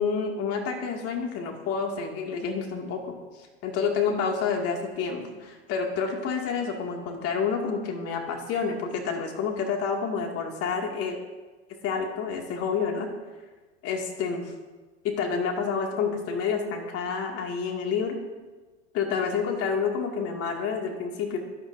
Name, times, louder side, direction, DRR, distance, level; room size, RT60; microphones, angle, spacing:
voice 1, 0.0-3.0 3.6-11.1 11.8-13.1 13.8-14.5 15.0-18.2 18.9-21.4, left 5 dB, 45° left, 2 dB, 2.3 m, -29 dB
15.5 x 11.5 x 2.7 m, 1.3 s
hypercardioid pair, 105°, 34 cm